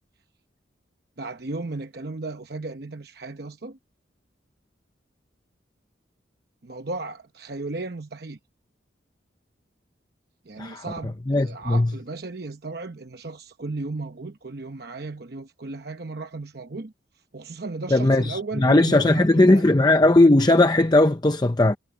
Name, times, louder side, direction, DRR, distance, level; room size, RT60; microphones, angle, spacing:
voice 1, 1.2-3.8 6.6-8.4 10.5-16.9 17.3-19.6, right 3 dB, 55° right, 0.9 m, -35 dB
voice 2, 11.3-11.9 17.9-21.8, left 2 dB, 20° left, 0.6 m, -18 dB
head